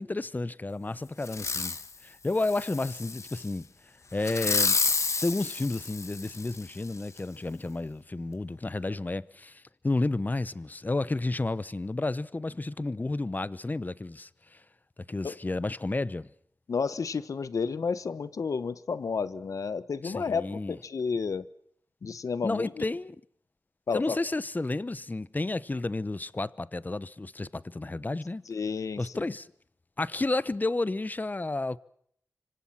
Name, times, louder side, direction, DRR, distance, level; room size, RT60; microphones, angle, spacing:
voice 1, 0.0-1.8 2.0-3.7 4.1-4.8 5.2-14.6 15.1-16.3 20.0-20.8 22.4-23.2 23.9-28.4 29.0-29.5 30.0-31.8, left 2 dB, 30° left, 0.9 m, -31 dB
Fireworks, 1.2-1.9 2.4-3.4 4.2-6.6 7.2-7.3, left 4 dB, 60° left, 1.4 m, -30 dB
voice 2, 16.7-21.4 22.0-22.8 23.9-24.2 28.5-29.0, left 5 dB, 80° left, 1.2 m, -31 dB
25.5 x 25.5 x 5.9 m
wide cardioid pair, 65°, 6 cm